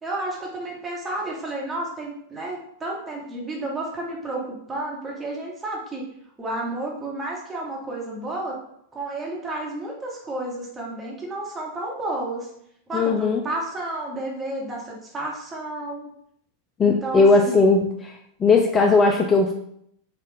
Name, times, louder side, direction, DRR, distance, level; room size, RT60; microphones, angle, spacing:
voice 1, 0.0-6.1 6.4-8.6 8.9-12.5 12.9-16.1 16.8-17.6, right 2 dB, 20° right, -2 dB, 1.1 m, -31 dB
voice 2, 12.9-13.4 16.8-17.8 18.4-19.5, left 3 dB, 20° left, 3 dB, 0.3 m, -17 dB
4.0 x 2.4 x 3.4 m, 0.72 s
figure-of-eight pair, 90°, 0 cm